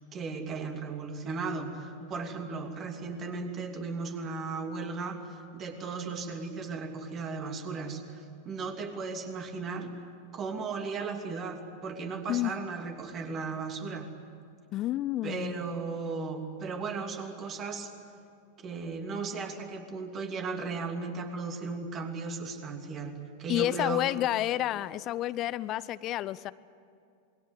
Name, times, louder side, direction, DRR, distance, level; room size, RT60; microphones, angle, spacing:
voice 1, 0.1-9.9 10.3-14.1 15.2-17.9 18.6-24.1, right 4 dB, 30° right, 5 dB, 3.0 m, -36 dB
voice 2, 14.7-15.6 23.5-26.5, left 14 dB, 35° left, 19 dB, 0.6 m, -30 dB
27.5 x 22.0 x 9.4 m, 2.4 s
figure-of-eight pair, 90°, 0 cm